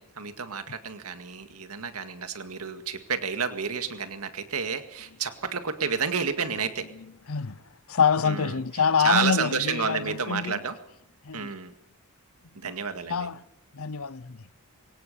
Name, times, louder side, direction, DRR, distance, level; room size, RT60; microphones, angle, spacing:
voice 1, 0.0-6.9 8.2-8.6 9.0-10.8 11.3-11.7 12.6-13.3, right 6 dB, 80° right, 1.9 m, -30 dB
voice 2, 7.3-7.6 7.9-10.6 11.2-11.5 12.6-12.7 13.1-13.4 13.7-14.4, left 6 dB, 70° left, 0.7 m, -26 dB
22.5 x 18.0 x 6.8 m
head